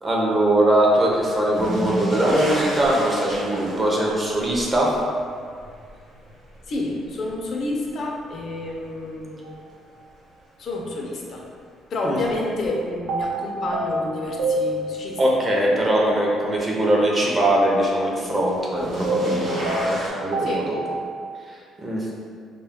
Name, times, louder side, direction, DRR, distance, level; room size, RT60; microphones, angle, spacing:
voice 1, 0.0-4.9 12.0-12.2 15.2-20.8 21.8-22.1, right 1 dB, 25° right, -3 dB, 0.5 m, -21 dB
sound 1, 1.2-8.2 8.7-9.4 11.0-11.1 12.6-12.7 18.5-20.1, equal, 45° right, 1.0 m, -31 dB
voice 2, 6.7-9.6 10.6-11.4 11.9-15.2 15.6-15.9 20.4-20.7, left 2 dB, 55° left, -1 dB, 0.4 m, -29 dB
sound 2, 9.4-9.6 13.1-15.4 19.0-21.0, right 1 dB, 80° right, 0.4 m, -27 dB
2.2 x 2.0 x 3.5 m, 2.2 s
cardioid pair, 115°, 0 cm